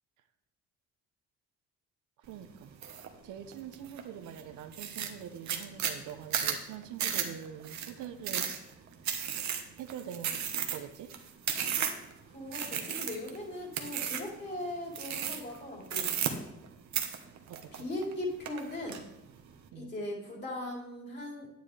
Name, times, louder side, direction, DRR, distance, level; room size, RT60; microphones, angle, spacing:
voice 1, 2.3-2.7 3.2-8.5 9.8-11.1 17.5-17.9 19.7-19.9, right 9 dB, 85° right, 8 dB, 0.8 m, -44 dB
sound 1, 2.8-3.1 3.5-4.0 4.4-4.5 4.7-12.1 12.5-13.4 13.7-14.4 14.9-15.6 15.9-16.7 16.9-18.1 18.5-19.0, right 8 dB, 65° right, 1.2 m, -33 dB
voice 2, 12.2-16.1 17.7-19.1 19.7-21.5, left 1 dB, 35° left, -2 dB, 3.8 m, -39 dB
9.4 x 9.3 x 3.3 m, 0.87 s
cardioid pair, 90°, 30 cm